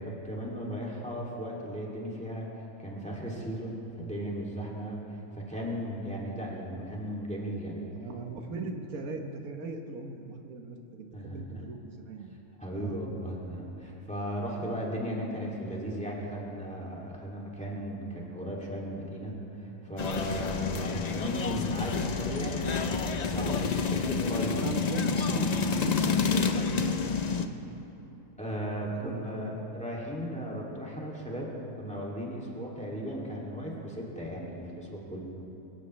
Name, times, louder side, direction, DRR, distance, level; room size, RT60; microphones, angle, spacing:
voice 1, 0.0-2.5 2.8-5.0 5.3-7.9 11.1-11.4 12.6-24.7 28.4-35.2, equal, 5° left, -4 dB, 2.5 m, -36 dB
voice 2, 7.9-12.3 12.7-13.0 14.7-14.9 20.7-20.9 24.5-25.5 25.8-27.5 28.9-29.6, right 3 dB, 80° right, 4 dB, 1.5 m, -39 dB
sound 1, 20.0-27.5, left 5 dB, 45° left, 0.5 m, -29 dB
23.0 x 16.0 x 3.2 m, 3.0 s
omnidirectional pair, 1.5 m